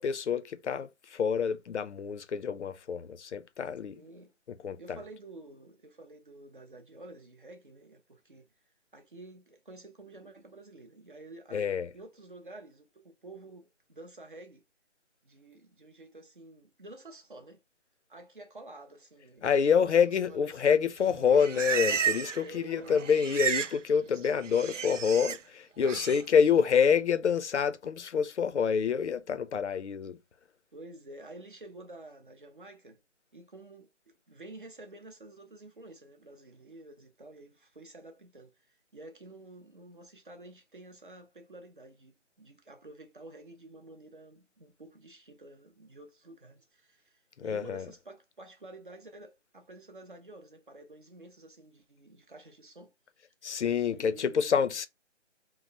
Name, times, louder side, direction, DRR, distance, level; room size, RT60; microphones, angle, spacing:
voice 1, 0.0-4.0 4.6-5.0 11.5-11.9 19.4-30.2 47.4-47.9 53.4-54.9, left 7 dB, 70° left, 0.5 m, -27 dB
voice 2, 3.9-4.3 4.8-8.5 8.9-14.6 15.2-17.6 18.1-19.5 19.8-20.6 22.4-23.1 25.9-26.2 30.7-33.0 33.3-52.9 53.8-54.6, right 2 dB, 45° right, 0.7 m, -50 dB
Livestock farm animals working animals, 21.0-22.5 22.7-23.8 24.1-25.4 25.8-26.2, right 8 dB, 90° right, 0.6 m, -32 dB
3.0 x 2.0 x 3.9 m
figure-of-eight pair, 175°, 36 cm